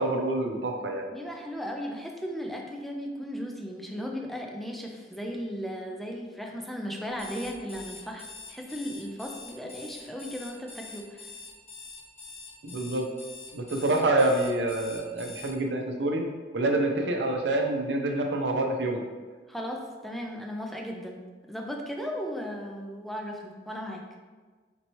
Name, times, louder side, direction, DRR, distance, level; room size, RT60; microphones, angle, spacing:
voice 1, 0.0-1.1 12.6-13.1 13.5-16.2 16.5-19.0, right 2 dB, 75° right, 2 dB, 0.6 m, -27 dB
voice 2, 1.1-11.3 19.5-21.2 21.5-24.0, equal, ahead, 0 dB, 0.4 m, -36 dB
Alarm, 7.1-15.5, left 4 dB, 35° left, 0.9 m, -45 dB
4.4 x 2.8 x 3.0 m, 1.4 s
head